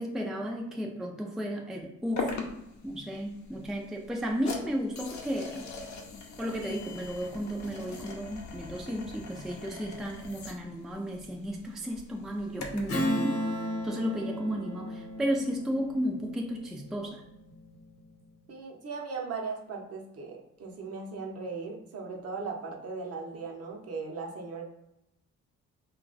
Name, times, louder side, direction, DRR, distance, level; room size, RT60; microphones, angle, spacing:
voice 1, 0.0-2.4 2.8-5.7 6.4-13.5 13.8-17.2, equal, ahead, 0 dB, 0.4 m, -33 dB
sound 1, 2.2-13.0, left 3 dB, 65° left, 0.7 m, -42 dB
Strum, 12.9-17.8, equal, 50° left, 1.0 m, -34 dB
voice 2, 18.5-24.6, right 4 dB, 55° right, 1 dB, 0.8 m, -38 dB
2.3 x 2.3 x 3.9 m, 0.85 s
cardioid pair, 90°, 30 cm